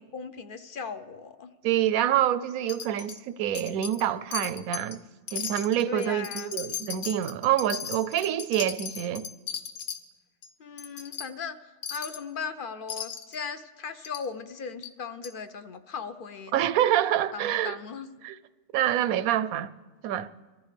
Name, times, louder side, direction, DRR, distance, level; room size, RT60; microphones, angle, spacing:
voice 1, 0.1-1.5 5.9-6.5 10.6-11.6 11.9-16.8 17.3-18.1, left 5 dB, 55° left, 0.6 m, -37 dB
voice 2, 1.6-5.0 5.3-9.3 16.5-17.8 18.2-18.4 18.7-19.7 20.0-20.3, right 11 dB, 90° right, 1.1 m, -26 dB
Wind chime, 2.7-3.2 3.5-4.1 4.3-5.0 5.3-10.0 10.4-10.5 10.8-11.3 11.8-12.2 12.9-13.4 14.0-14.3 14.8-14.9 15.2-15.3, left 7 dB, 75° left, 1.3 m, -36 dB
23.5 x 14.5 x 3.3 m
omnidirectional pair, 1.5 m